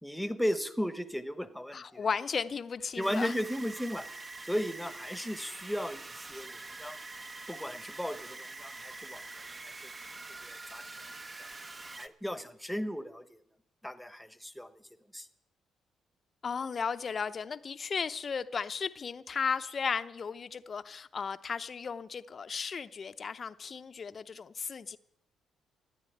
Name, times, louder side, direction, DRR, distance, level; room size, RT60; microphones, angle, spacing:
voice 1, 0.0-2.0 3.0-4.1 4.4-7.0 7.5-9.2 9.5-9.9 10.4-11.1 11.4-11.5 12.0-13.4 13.8-14.7 15.1-15.3, equal, 5° left, 1.2 m, -36 dB
voice 2, 1.7-3.3 16.4-25.0, left 6 dB, 45° left, 0.7 m, -35 dB
sound 1, 3.0-12.1, right 3 dB, 30° right, 0.9 m, -45 dB
14.0 x 9.5 x 9.3 m
cardioid pair, 90°, 0 cm